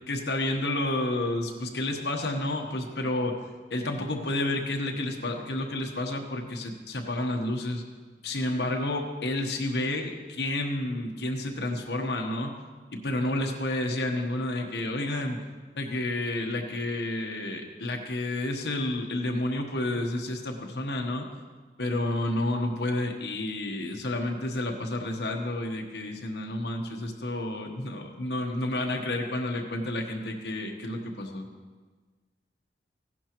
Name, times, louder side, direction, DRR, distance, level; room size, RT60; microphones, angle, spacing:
voice 1, 0.1-3.4 3.7-7.8 8.2-12.5 13.0-15.4 15.8-21.3 21.8-31.5, left 1 dB, 80° left, 2 dB, 1.1 m, -30 dB
15.5 x 11.0 x 3.0 m, 1.4 s
head